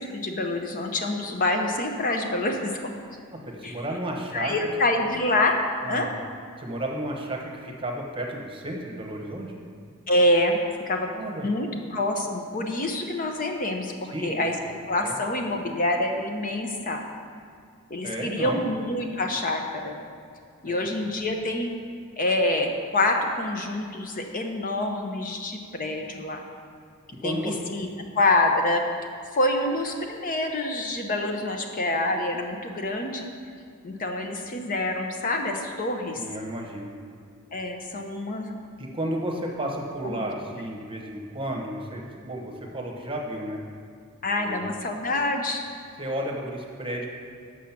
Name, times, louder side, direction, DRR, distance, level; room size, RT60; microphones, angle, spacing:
voice 1, 0.0-2.9 3.6-3.8 4.3-5.6 5.9-6.1 10.1-11.1 11.4-14.5 14.9-17.0 17.9-19.9 20.6-21.7 22.2-26.4 27.2-27.9 28.1-28.8 29.3-33.3 33.8-36.2 37.5-38.6 40.0-40.2 44.2-45.6, left 1 dB, 40° left, 3 dB, 0.7 m, -26 dB
voice 2, 3.3-4.5 5.8-6.2 6.6-9.5 11.1-11.8 14.1-14.5 15.0-15.2 18.0-18.7 20.7-20.9 27.2-27.6 36.2-36.9 38.8-43.6 44.4-44.7 46.0-47.1, right 1 dB, 25° right, 1 dB, 1.0 m, -33 dB
7.2 x 6.2 x 5.9 m, 2.3 s
head